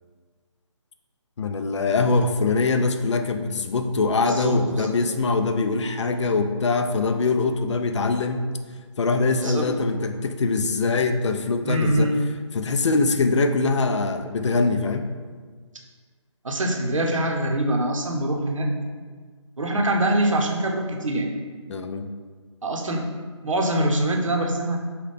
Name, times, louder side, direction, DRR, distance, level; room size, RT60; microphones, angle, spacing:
voice 1, 1.4-8.5 9.0-12.1 12.5-15.1 21.7-22.1, left 3 dB, 65° left, 7 dB, 0.4 m, -23 dB
voice 2, 4.2-4.9 9.3-9.7 11.6-12.2 16.4-18.7 19.6-21.3 22.6-23.1 23.4-24.8, right 1 dB, 90° right, 2 dB, 0.7 m, -24 dB
5.5 x 2.3 x 3.4 m, 1.6 s
figure-of-eight pair, 155°, 16 cm